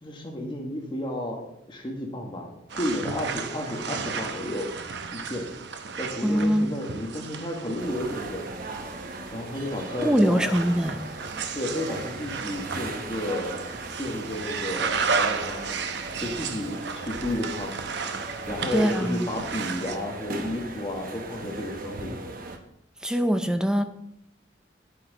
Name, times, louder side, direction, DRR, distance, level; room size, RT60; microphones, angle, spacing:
voice 1, 0.0-1.4 1.7-4.7 5.1-5.5 6.0-8.4 9.3-10.5 11.5-13.6 13.9-15.7 16.2-17.8 18.5-22.1, left 1 dB, 25° left, 0 dB, 1.5 m, -32 dB
sound 1, 2.7-20.0, right 5 dB, 70° right, 0.8 m, -34 dB
voice 2, 6.2-6.7 10.0-11.1 18.7-19.3 23.0-23.8, equal, 5° right, 8 dB, 0.5 m, -23 dB
sound 2, 7.8-22.6, right 2 dB, 50° right, 1.1 m, -38 dB
9.7 x 8.5 x 4.0 m, 0.78 s
head